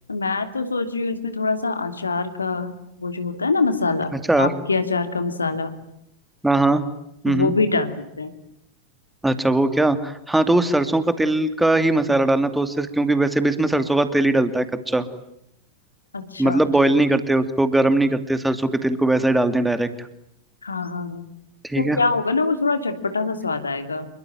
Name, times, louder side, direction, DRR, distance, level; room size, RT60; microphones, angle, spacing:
voice 1, 0.1-4.1 4.4-5.8 7.3-8.3 16.1-16.6 20.6-21.3 21.8-24.1, left 3 dB, 75° left, 8 dB, 2.9 m, -24 dB
voice 2, 6.4-6.8 7.2-7.5 9.2-15.1 16.4-20.1 21.6-22.0, right 2 dB, 5° right, 10 dB, 2.7 m, -20 dB
27.5 x 23.0 x 9.2 m, 0.78 s
figure-of-eight pair, 90°, 0 cm